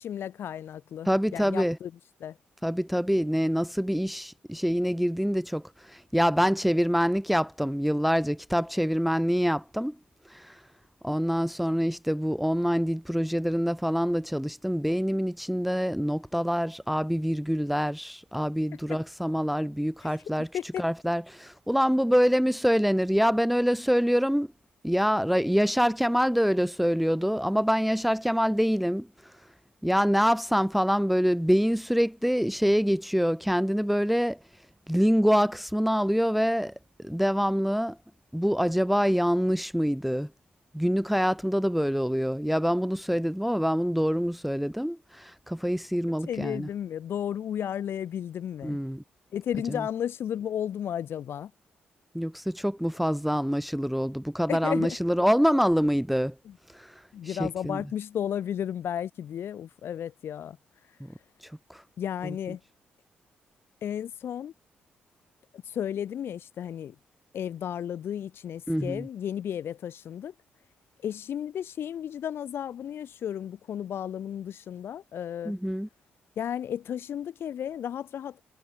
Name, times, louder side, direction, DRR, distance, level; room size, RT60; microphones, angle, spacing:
voice 1, 0.0-1.9 2.2-2.4 18.9-19.0 20.0-20.2 20.5-20.8 46.3-48.8 49.3-51.5 54.5-55.0 56.5-56.6 57.1-60.6 62.0-62.6 63.8-64.5 65.5-67.0 67.3-70.3 71.0-75.5 76.4-78.4, left 9 dB, 70° left, 3.7 m, -33 dB
voice 2, 1.1-1.8 2.6-10.0 10.3-10.6 11.0-20.5 20.8-24.5 24.8-29.1 29.8-34.4 34.9-36.7 37.0-38.0 38.3-40.3 40.7-46.7 48.6-49.0 49.7-49.8 52.1-56.3 56.7-56.9 57.2-57.8 61.7-61.8 62.2-62.4 68.7-69.1 75.4-75.9, equal, ahead, 0.6 m, -25 dB
supercardioid pair, 60°, 4 cm